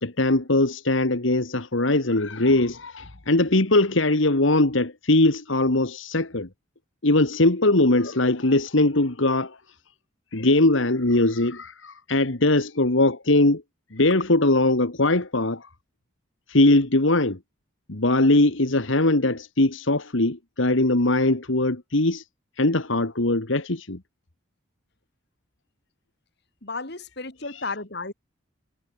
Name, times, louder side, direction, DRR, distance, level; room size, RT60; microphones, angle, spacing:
voice 1, 0.0-6.5 7.0-9.6 10.3-13.6 13.9-15.7 16.5-17.4 17.9-22.2 22.6-24.0 27.4-27.6, left 2 dB, 70° left, 1.9 m, -21 dB
voice 2, 26.6-28.1, left 3 dB, 55° left, 2.9 m, -32 dB
head